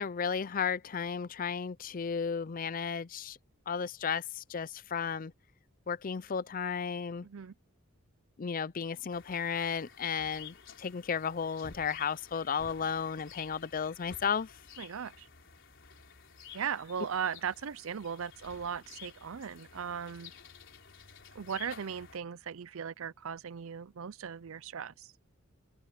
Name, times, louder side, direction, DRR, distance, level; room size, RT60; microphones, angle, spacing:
voice 1, 0.0-3.4 3.7-5.3 5.9-7.3 8.4-14.5, left 6 dB, 40° left, 0.5 m, -34 dB
voice 2, 7.2-7.5 14.8-15.3 16.5-20.3 21.3-25.1, right 7 dB, 70° right, 0.5 m, -38 dB
sound 1, 9.1-22.2, left 6 dB, 60° left, 4.4 m, -53 dB
open air
head